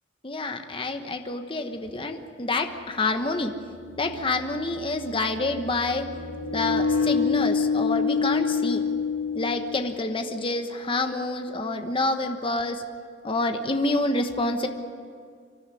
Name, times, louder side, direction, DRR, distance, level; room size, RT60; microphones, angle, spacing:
voice 1, 0.2-3.5 4.0-6.1 6.5-8.8 9.3-12.8 13.2-14.7, left 2 dB, 30° left, 6 dB, 1.2 m, -27 dB
sound 1, 1.9-2.0 3.5-10.3, left 5 dB, 90° left, 2.0 m, -28 dB
25.0 x 12.5 x 9.8 m, 2.1 s
head